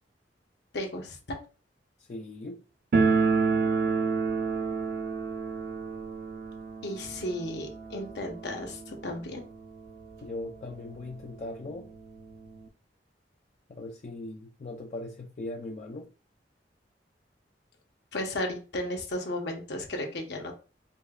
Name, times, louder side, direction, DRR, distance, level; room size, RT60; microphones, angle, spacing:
voice 1, 0.7-1.2 6.8-9.4 18.1-20.6, left 1 dB, 65° left, 2 dB, 0.9 m, -34 dB
voice 2, 2.1-2.6 10.2-11.9 13.7-16.1, left 2 dB, 40° left, 1 dB, 0.4 m, -39 dB
sound 1, 2.9-9.6 9.9-10.0 10.2-10.3 11.1-11.2 11.5-12.7, right 4 dB, 60° right, 0.5 m, -29 dB
5.1 x 2.2 x 2.3 m, 0.34 s
head